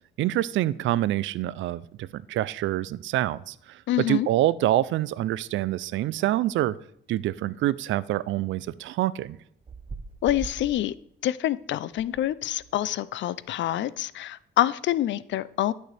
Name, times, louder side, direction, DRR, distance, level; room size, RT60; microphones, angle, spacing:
voice 1, 0.2-3.8 4.1-6.8 7.1-9.4, right 14 dB, 75° right, 0.4 m, -26 dB
voice 2, 3.9-4.3 10.2-10.9 11.2-15.7, left 13 dB, 70° left, 0.4 m, -26 dB
sound 1, 9.6-10.8 11.9-12.2 12.5-12.7, right 4 dB, 25° right, 0.6 m, -40 dB
11.5 x 6.4 x 3.3 m
cardioid pair, 90°, 20 cm